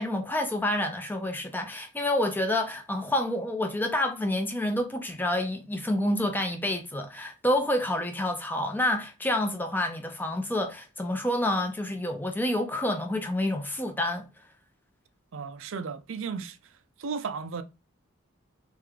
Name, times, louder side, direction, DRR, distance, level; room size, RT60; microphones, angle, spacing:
voice 1, 0.0-14.3, left 1 dB, 10° left, 0.5 m, -28 dB
voice 2, 15.3-16.6 17.0-17.6, right 5 dB, 70° right, 0.5 m, -34 dB
3.3 x 3.3 x 3.6 m
head